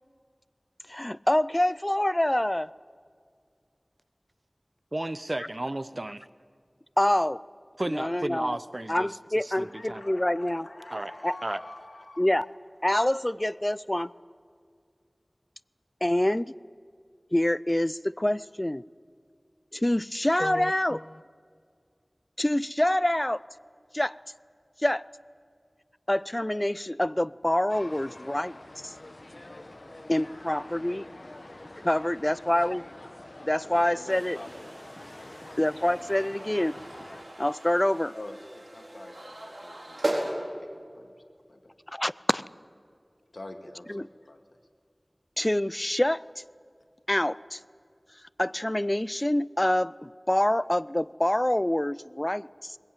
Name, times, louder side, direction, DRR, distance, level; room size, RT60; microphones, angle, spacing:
voice 1, 0.9-2.7 7.0-7.4 7.9-8.6 8.9-10.7 11.2-11.3 12.2-12.5 12.8-14.1 16.0-16.5 17.3-18.8 19.7-21.2 22.4-23.4 23.9-24.1 24.8-25.0 26.1-28.6 28.8-28.9 30.1-31.0 31.8-32.8 33.4-34.4 35.6-36.8 37.4-38.2 41.9-42.4 43.9-44.1 45.4-46.2 47.1-47.6 48.4-52.8, left 1 dB, 30° left, 0.5 m, -26 dB
voice 2, 4.9-6.2 7.8-9.1 9.4-10.0 10.9-11.1 11.4-11.6, right 1 dB, 50° right, 0.8 m, -33 dB
voice 3, 9.5-12.3 33.6-34.7 35.1-35.6 38.1-40.2 40.6-41.2 41.5-41.7 43.3-44.6, left 2 dB, 80° left, 2.2 m, -46 dB
sound 1, 27.7-37.2, left 1 dB, 60° left, 1.4 m, -46 dB
sound 2, 34.1-40.3, right 1 dB, 75° right, 4.7 m, -37 dB
21.5 x 21.0 x 9.1 m
wide cardioid pair, 45°, 0 cm